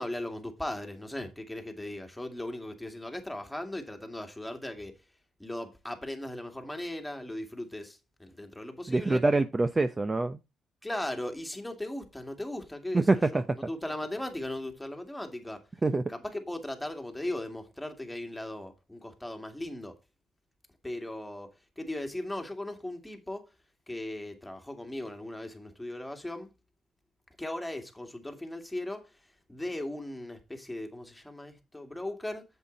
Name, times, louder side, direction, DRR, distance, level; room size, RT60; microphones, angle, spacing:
voice 1, 0.0-4.9 5.4-9.2 10.8-15.7 16.1-20.0 20.8-23.5 23.9-26.5 27.4-29.2 29.5-32.5, left 1 dB, 5° left, 2.2 m, -38 dB
voice 2, 8.9-10.4 12.9-13.4 15.8-16.0, right 2 dB, 25° right, 0.7 m, -25 dB
8.0 x 7.7 x 4.0 m
cardioid pair, 90°, 0 cm